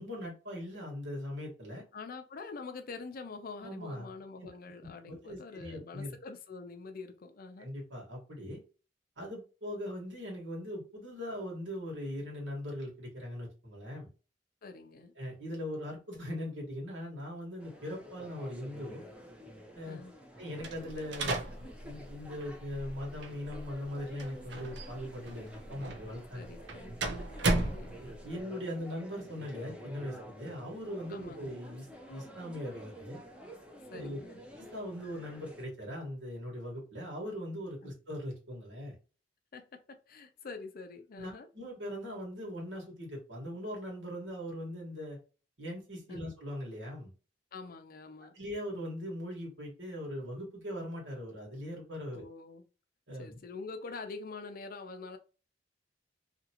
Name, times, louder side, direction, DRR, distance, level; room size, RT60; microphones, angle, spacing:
voice 1, 0.0-1.9 3.6-4.1 4.4-4.5 4.8-6.1 7.6-8.6 9.2-14.1 15.2-19.0 19.7-20.0 20.4-26.7 27.6-27.7 28.0-33.2 33.9-34.2 34.6-39.0 41.2-45.2 45.6-47.1 48.2-52.2 53.1-53.4, equal, 90° right, 1.5 m, -40 dB
voice 2, 1.9-7.7 14.6-15.1 19.9-20.2 26.3-27.0 27.5-28.0 31.1-31.6 33.9-34.4 37.8-37.9 39.5-41.5 46.1-46.3 47.5-48.3 52.1-52.7 53.2-55.2, left 4 dB, 55° left, 0.5 m, -45 dB
sound 1, 17.6-35.6, equal, 5° right, 0.6 m, -50 dB
sound 2, 20.6-28.4, right 2 dB, 70° right, 0.6 m, -36 dB
2.9 x 2.5 x 2.8 m
head